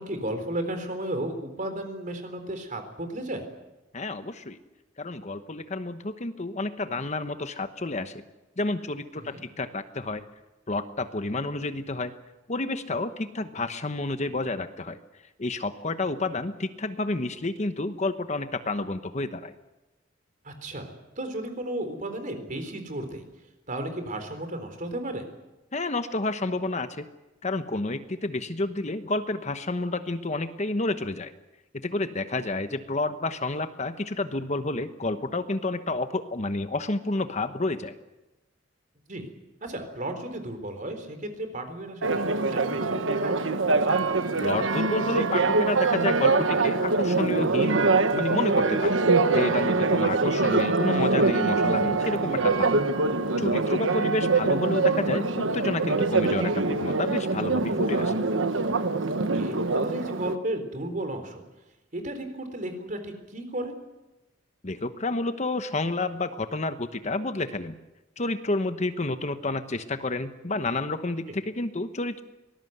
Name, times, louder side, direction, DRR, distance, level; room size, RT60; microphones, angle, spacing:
voice 1, 0.0-3.5 9.1-9.4 20.4-23.3 23.7-25.3 39.1-39.3 39.6-43.5 59.3-61.4 61.9-63.8, right 1 dB, 40° right, 7 dB, 3.9 m, -34 dB
voice 2, 3.9-4.6 5.0-8.2 8.6-10.2 10.7-12.1 12.5-15.0 15.4-19.5 25.7-27.1 27.4-31.3 31.7-37.9 44.4-49.0 49.3-52.7 53.4-55.2 55.5-58.2 64.6-67.8 68.2-72.2, left 2 dB, 35° left, 10 dB, 1.0 m, -30 dB
Church bell, 42.0-60.4, right 3 dB, 80° right, 1.3 m, -24 dB
24.0 x 19.0 x 8.0 m, 1.0 s
head